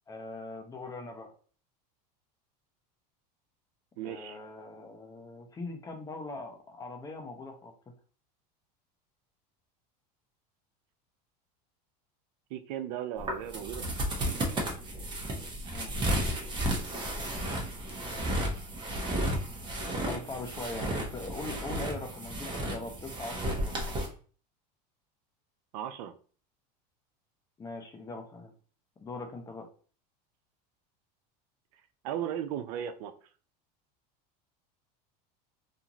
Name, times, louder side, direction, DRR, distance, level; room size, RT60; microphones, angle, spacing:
voice 1, 0.1-1.3 4.0-7.7 15.7-15.9 20.0-23.7 27.6-28.5 29.0-29.7, left 3 dB, 15° left, 3 dB, 0.5 m, -41 dB
voice 2, 4.0-4.4 12.5-14.4 25.7-26.1 32.0-33.1, right 10 dB, 75° right, 9 dB, 0.4 m, -37 dB
sound 1, 13.2-24.1, right 1 dB, 25° right, 0.8 m, -33 dB
2.5 x 2.4 x 2.9 m, 0.42 s
supercardioid pair, 125°, 20 cm